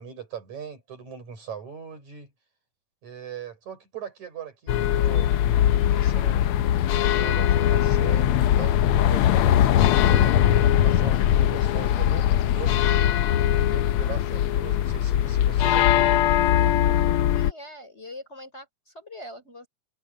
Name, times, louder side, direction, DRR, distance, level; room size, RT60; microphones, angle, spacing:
voice 1, 0.0-2.3 3.0-5.3 5.9-6.5 7.1-10.3 10.8-12.3 12.5-13.2 13.7-16.1, right 8 dB, 75° right, 7.7 m, -40 dB
sound 1, 4.7-17.5, left 11 dB, 85° left, 1.2 m, -21 dB
voice 2, 17.3-19.7, left 1 dB, 20° left, 3.9 m, -42 dB
omnidirectional pair, 3.3 m